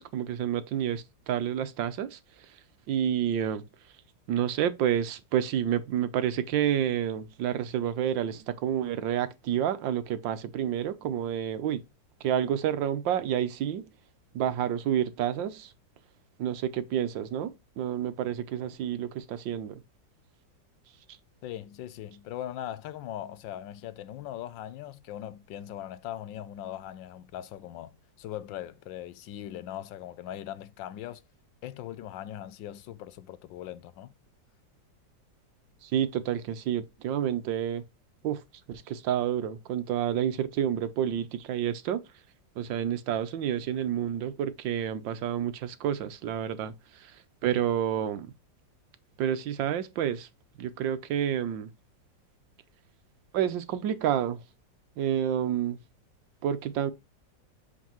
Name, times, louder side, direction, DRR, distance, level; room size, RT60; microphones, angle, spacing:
voice 1, 0.0-2.2 2.9-3.7 4.3-11.8 12.2-13.9 14.3-15.7 16.4-19.8 35.8-37.8 38.2-38.4 38.7-42.0 42.6-48.3 49.2-50.3 50.6-51.7 53.3-54.4 55.0-55.8 56.4-56.9, right 10 dB, 80° right, 1.5 m, -29 dB
voice 2, 21.4-31.2 31.6-34.1, left 12 dB, 90° left, 1.3 m, -40 dB
7.3 x 4.6 x 3.0 m
omnidirectional pair, 2.0 m